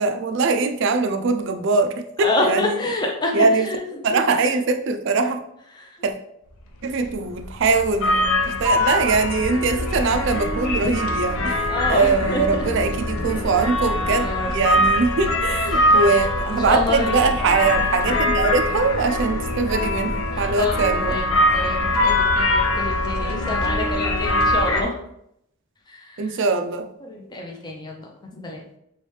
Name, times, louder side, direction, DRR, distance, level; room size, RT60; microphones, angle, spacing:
voice 1, 0.0-2.8 3.3-3.7 4.0-5.4 6.0-6.1 6.8-21.2 26.2-26.9, right 4 dB, 55° right, 7 dB, 0.4 m, -22 dB
voice 2, 2.2-3.8 4.1-4.2 11.7-12.4 13.2-13.4 14.2-14.5 15.7-15.9 16.7-17.2 20.4-24.9 25.9-26.2 27.0-28.1 28.4-28.6, left 2 dB, 20° left, 0 dB, 0.5 m, -27 dB
sound 1, 7.0-24.8, left 1 dB, 70° left, 0.5 m, -23 dB
3.2 x 3.1 x 3.1 m, 0.76 s
head